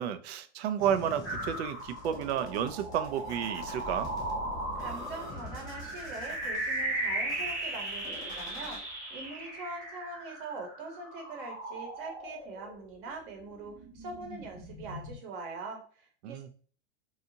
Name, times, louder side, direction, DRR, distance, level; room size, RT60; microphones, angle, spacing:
voice 1, 0.0-4.1 16.2-16.5, right 9 dB, 65° right, 10 dB, 0.5 m, -31 dB
sound 1, 0.8-8.8, left 2 dB, 10° left, 0.3 m, -47 dB
sound 2, 1.2-13.1 13.5-15.2, right 1 dB, 5° right, 0.9 m, -37 dB
voice 2, 4.7-16.5, right 3 dB, 45° right, 2 dB, 1.0 m, -43 dB
2.8 x 2.4 x 2.6 m, 0.44 s
hypercardioid pair, 135°, 35 cm